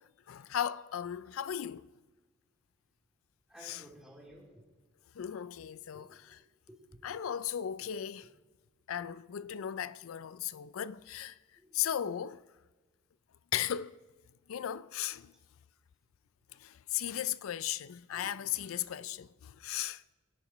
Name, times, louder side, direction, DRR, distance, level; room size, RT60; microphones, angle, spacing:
voice 1, 0.0-1.9 3.6-3.8 5.2-6.4 7.0-8.3 8.9-11.4 11.7-12.4 13.5-14.0 14.5-15.3 16.6-20.0, left 10 dB, 85° left, 0.4 m, -36 dB
voice 2, 3.5-4.6 5.9-6.1 6.7-7.0 7.8-7.9 8.9-9.0 11.6-11.7 18.1-18.4 18.8-18.9, equal, 5° right, 3.8 m, -54 dB
26.0 x 10.5 x 3.1 m
head